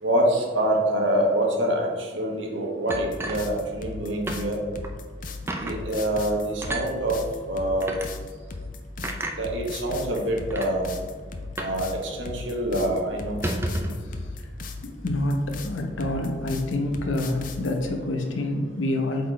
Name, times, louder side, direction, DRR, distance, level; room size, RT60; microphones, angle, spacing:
voice 1, 0.0-4.6 5.6-7.2 7.5-7.9 9.4-10.9 11.6-13.4, right 1 dB, 70° right, 0 dB, 1.2 m, -25 dB
sound 1, 2.9-17.8, left 3 dB, 40° left, 0.5 m, -37 dB
sound 2, 2.9-4.0 4.3-4.4 4.8-5.0 5.5-5.8 6.6-6.9 7.8-8.1 9.0-9.4 10.1-10.2 10.5-10.7 11.6-11.8 12.1-12.2 12.5-12.7 13.3-14.0, right 1 dB, 10° right, 0.4 m, -31 dB
voice 2, 13.9-14.5 14.8-19.3, left 1 dB, 80° left, 3 dB, 0.9 m, -28 dB
8.2 x 4.1 x 3.2 m, 1.5 s
head